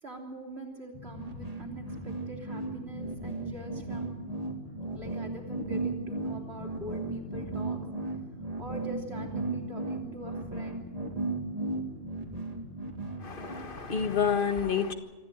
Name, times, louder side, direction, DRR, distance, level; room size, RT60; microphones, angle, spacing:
voice 1, 0.0-4.1 4.9-7.8 8.6-10.8, right 1 dB, 60° right, 3.7 m, -43 dB
Drum, 0.9-14.4, left 4 dB, 30° left, 1.2 m, -48 dB
sound 1, 1.1-13.7, right 3 dB, 30° right, 2.0 m, -35 dB
voice 2, 13.2-14.9, left 7 dB, 45° left, 1.7 m, -29 dB
25.5 x 14.0 x 9.0 m
omnidirectional pair, 1.3 m